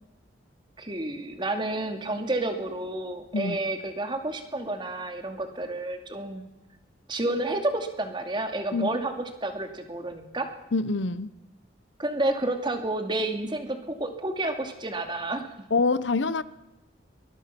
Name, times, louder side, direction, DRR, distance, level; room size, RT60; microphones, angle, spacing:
voice 1, 0.8-6.5 7.1-10.5 12.0-15.5, right 2 dB, 25° right, 5 dB, 2.5 m, -30 dB
voice 2, 10.7-11.3 15.7-16.4, left 3 dB, 70° left, 16 dB, 0.8 m, -25 dB
23.0 x 21.0 x 6.0 m, 0.97 s
head